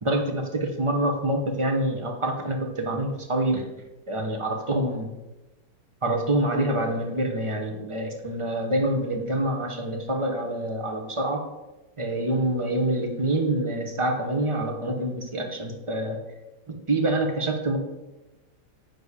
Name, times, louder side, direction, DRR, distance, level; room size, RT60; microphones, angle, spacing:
voice 1, 0.0-3.7 4.1-5.1 6.0-11.4 12.0-16.2 16.7-17.8, right 1 dB, 25° right, 2 dB, 0.7 m, -26 dB
9.8 x 4.1 x 6.8 m, 1.0 s
omnidirectional pair, 2.3 m